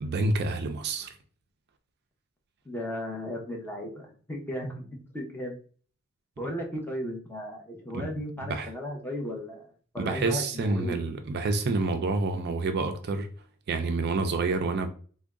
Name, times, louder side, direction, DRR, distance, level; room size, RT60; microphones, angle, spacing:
voice 1, 0.0-1.1 7.9-8.1 8.5-8.7 10.0-13.3 13.7-14.9, right 3 dB, 50° right, 0.4 m, -28 dB
voice 2, 2.6-4.9 5.1-5.6 6.4-9.6 9.9-11.0, equal, 10° left, 0.8 m, -35 dB
3.5 x 2.2 x 3.6 m
head